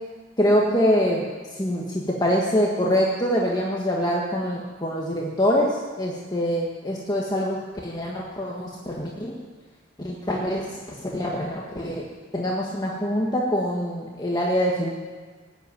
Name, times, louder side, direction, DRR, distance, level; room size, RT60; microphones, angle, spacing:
voice 1, 0.4-1.2 1.5-9.4 10.0-12.1 12.3-14.9, equal, 20° left, -3 dB, 1.6 m, -24 dB
19.0 x 8.1 x 9.2 m, 1.4 s
head